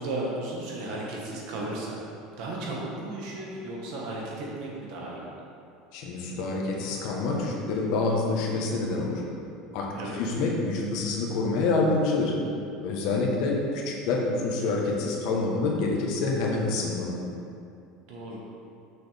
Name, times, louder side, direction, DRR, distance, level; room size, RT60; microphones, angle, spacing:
voice 1, 0.0-2.0 2.4-5.3 9.9-10.3 18.1-18.4, right 2 dB, 65° right, -3 dB, 1.6 m, -34 dB
voice 2, 5.9-9.2 9.7-9.9 10.2-12.3 12.8-17.1, left 3 dB, 60° left, -1 dB, 1.2 m, -27 dB
6.2 x 6.2 x 3.5 m, 2.5 s
supercardioid pair, 145°, 0 cm